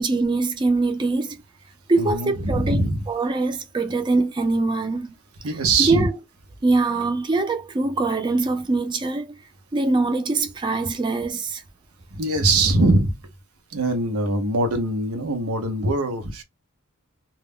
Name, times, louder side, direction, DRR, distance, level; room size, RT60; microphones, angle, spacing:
voice 1, 0.0-1.4 1.9-5.1 5.8-6.1 6.6-9.3 9.7-11.6, right 3 dB, 20° right, 0.4 m, -23 dB
voice 2, 2.0-3.0 5.4-6.1 12.1-13.2 13.7-16.4, right 2 dB, 85° right, 0.7 m, -22 dB
2.2 x 2.0 x 3.5 m
head